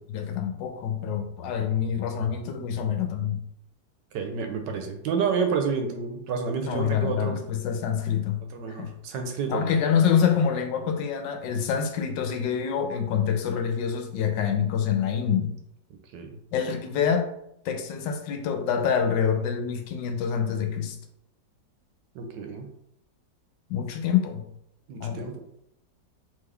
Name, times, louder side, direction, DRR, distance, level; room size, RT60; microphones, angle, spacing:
voice 1, 0.1-3.4 6.7-8.4 8.7-8.9 9.5-15.5 16.5-17.3 17.6-21.0 23.7-24.5 25.0-25.3, left 7 dB, 85° left, 6 dB, 1.3 m, -26 dB
voice 2, 4.1-7.4 8.5-9.6 16.1-16.4 22.1-22.7 24.9-25.4, right 5 dB, 80° right, 4 dB, 1.3 m, -29 dB
3.7 x 3.1 x 3.3 m, 0.76 s
omnidirectional pair, 1.9 m